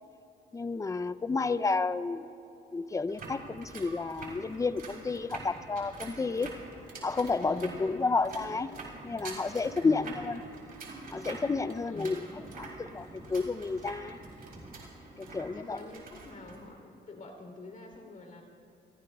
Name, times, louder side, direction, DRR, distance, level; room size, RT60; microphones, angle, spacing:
voice 1, 0.5-2.3 2.7-6.5 7.0-8.7 9.0-10.4 11.1-12.2 12.6-14.2 15.2-15.8, left 4 dB, 15° left, 13 dB, 0.4 m, -31 dB
sound 1, 3.1-16.6, right 3 dB, 50° right, 3.5 m, -46 dB
Wind, 4.1-15.9, right 1 dB, 15° right, 1.6 m, -53 dB
voice 2, 7.4-7.9 9.8-10.2 11.9-12.4 15.5-18.4, left 2 dB, 40° left, 2 dB, 3.0 m, -45 dB
28.5 x 15.5 x 2.3 m, 2.9 s
cardioid pair, 90°, 20 cm